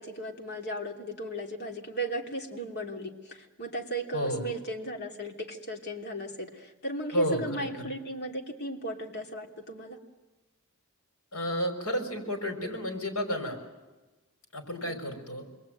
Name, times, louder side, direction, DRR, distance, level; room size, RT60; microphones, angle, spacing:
voice 1, 0.0-10.0 14.8-15.0, right 1 dB, 50° left, 2 dB, 2.8 m, -36 dB
voice 2, 7.1-7.7 11.3-13.6 14.5-15.4, equal, 75° left, 5 dB, 5.1 m, -31 dB
28.5 x 21.5 x 9.1 m, 1.2 s
head